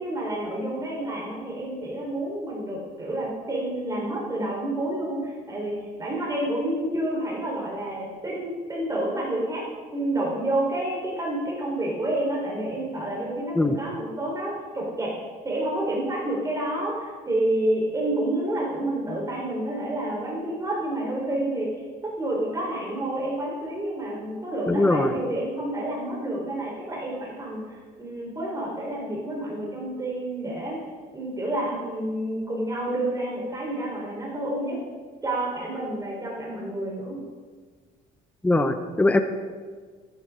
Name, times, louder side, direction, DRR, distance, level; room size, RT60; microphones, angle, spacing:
voice 1, 0.0-9.6 9.9-15.1 15.4-30.8 31.1-34.8 35.2-37.2, right 1 dB, 20° right, -3 dB, 4.1 m, -29 dB
voice 2, 24.7-25.1 38.4-39.2, left 2 dB, 10° left, 8 dB, 0.8 m, -21 dB
14.5 x 11.0 x 3.8 m, 1.5 s
cardioid pair, 110°, 17 cm